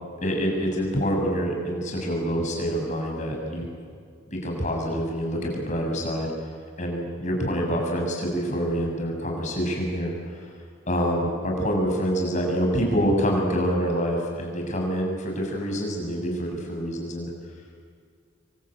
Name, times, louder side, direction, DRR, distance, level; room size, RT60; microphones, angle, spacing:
voice 1, 0.2-3.7 4.3-6.3 6.8-10.4 10.9-17.3, equal, 40° left, 0 dB, 7.3 m, -26 dB
27.5 x 23.5 x 9.1 m, 2.1 s
head